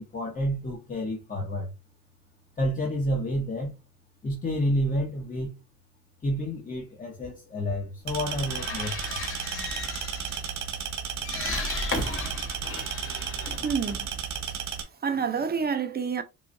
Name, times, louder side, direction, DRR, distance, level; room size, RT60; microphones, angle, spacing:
voice 1, 0.0-1.7 2.6-3.7 4.2-5.5 6.2-9.2, equal, 25° left, 1.0 m, -29 dB
sound 1, 8.1-14.6, left 2 dB, 45° left, 1.2 m, -35 dB
sound 2, 8.1-14.8, right 8 dB, 70° right, 1.2 m, -34 dB
voice 2, 13.6-14.1 15.0-16.2, right 6 dB, 30° right, 0.7 m, -28 dB
4.7 x 2.4 x 2.6 m
cardioid pair, 90°, 30 cm